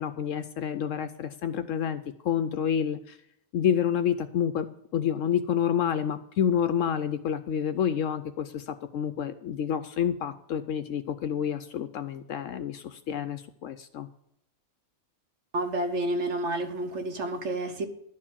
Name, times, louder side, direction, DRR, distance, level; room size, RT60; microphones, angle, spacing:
voice 1, 0.0-3.2 3.5-4.7 4.9-14.1, left 8 dB, 70° left, 10 dB, 0.8 m, -28 dB
voice 2, 15.5-17.9, right 1 dB, 55° right, 7 dB, 1.1 m, -30 dB
11.5 x 4.7 x 7.2 m, 0.74 s
omnidirectional pair, 1.6 m